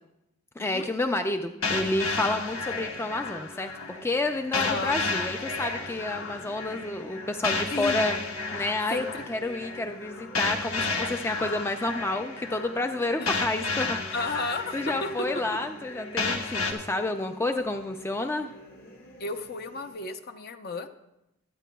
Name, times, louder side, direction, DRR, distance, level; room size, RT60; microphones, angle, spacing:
voice 1, 0.6-8.1 8.5-14.3 14.7-18.5, left 2 dB, 10° left, 6 dB, 0.4 m, -30 dB
sound 1, 1.6-16.7, left 3 dB, 85° left, 1.3 m, -32 dB
sound 2, 2.4-19.9, left 1 dB, 70° left, 2.8 m, -48 dB
voice 2, 4.5-4.9 7.7-8.1 8.9-9.2 13.2-13.3 14.1-15.1 15.5-15.6 19.2-20.9, left 3 dB, 50° left, 7 dB, 0.7 m, -33 dB
21.5 x 9.1 x 2.3 m, 0.89 s
head